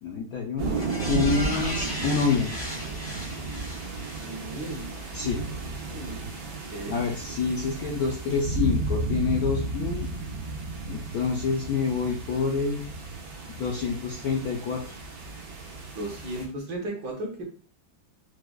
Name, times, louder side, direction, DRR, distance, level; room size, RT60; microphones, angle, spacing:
voice 1, 0.0-0.7 1.1-2.5 5.1-5.4 6.9-10.1 10.8-12.8 13.5-14.9, left 5 dB, 75° left, -1 dB, 0.8 m, -27 dB
sound 1, 0.6-16.4, right 3 dB, 90° right, 1.8 m, -33 dB
sound 2, 0.7-5.2 5.6-5.7, left 1 dB, 20° left, 0.5 m, -37 dB
voice 2, 4.2-4.9 5.9-6.2 6.7-7.0 15.9-17.4, right 1 dB, 65° right, -1 dB, 1.5 m, -35 dB
4.7 x 2.1 x 2.3 m, 0.41 s
omnidirectional pair, 2.1 m